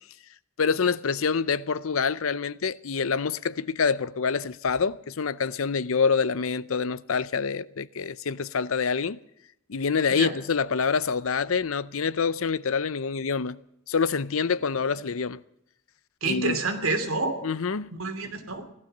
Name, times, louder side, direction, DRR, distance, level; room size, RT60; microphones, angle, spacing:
voice 1, 0.6-9.2 9.7-13.6 13.9-15.4 16.2-16.6 17.4-17.9 18.2-18.4, left 5 dB, 70° left, 0.6 m, -26 dB
voice 2, 16.2-17.4 17.9-18.7, right 3 dB, 70° right, 3.0 m, -28 dB
17.0 x 12.0 x 6.7 m
head